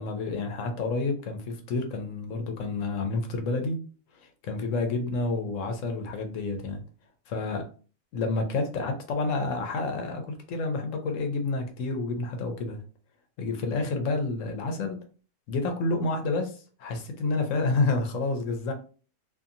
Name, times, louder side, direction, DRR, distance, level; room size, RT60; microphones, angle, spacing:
voice 1, 0.0-3.8 4.2-6.8 7.3-7.7 8.1-12.8 13.4-15.0 15.5-18.7, left 3 dB, 65° left, 5 dB, 0.9 m, -29 dB
2.7 x 2.6 x 2.5 m, 0.38 s
omnidirectional pair, 1.6 m